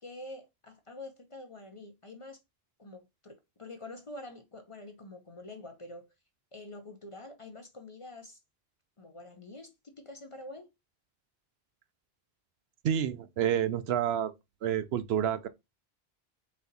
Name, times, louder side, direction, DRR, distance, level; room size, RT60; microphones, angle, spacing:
voice 1, 0.0-2.4 2.8-6.1 6.5-8.4 9.0-10.7, left 2 dB, 35° left, 0.6 m, -46 dB
voice 2, 12.8-14.3 14.6-15.5, right 9 dB, 80° right, 0.8 m, -29 dB
4.1 x 2.8 x 3.9 m
omnidirectional pair, 1.1 m